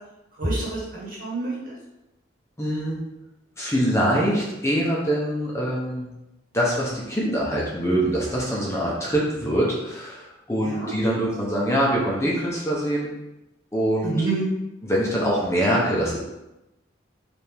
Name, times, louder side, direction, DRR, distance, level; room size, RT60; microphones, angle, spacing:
voice 1, 0.4-1.7 10.6-10.9 14.0-14.5 15.7-15.8, right 2 dB, 45° right, -6 dB, 1.5 m, -27 dB
voice 2, 2.6-3.0 3.6-6.1 6.5-13.1 13.7-14.1 14.8-16.2, equal, 15° left, -5 dB, 0.7 m, -24 dB
4.3 x 3.4 x 3.4 m, 0.95 s
head